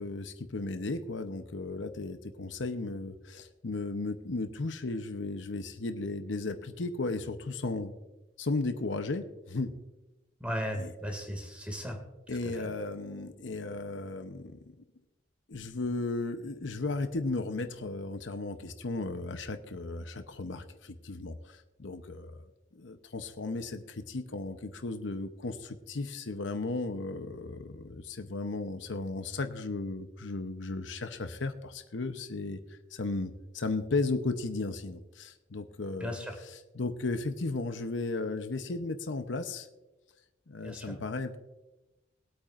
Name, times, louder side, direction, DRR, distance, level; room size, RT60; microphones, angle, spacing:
voice 1, 0.0-7.9 8.4-9.7 10.7-10.9 12.3-14.6 15.5-22.4 22.7-39.7 40.5-41.4, left 3 dB, 75° left, 8 dB, 0.8 m, -35 dB
voice 2, 10.4-12.0 36.0-36.3 40.6-40.9, equal, 5° right, 3 dB, 2.2 m, -36 dB
22.5 x 8.6 x 2.5 m, 1.0 s
head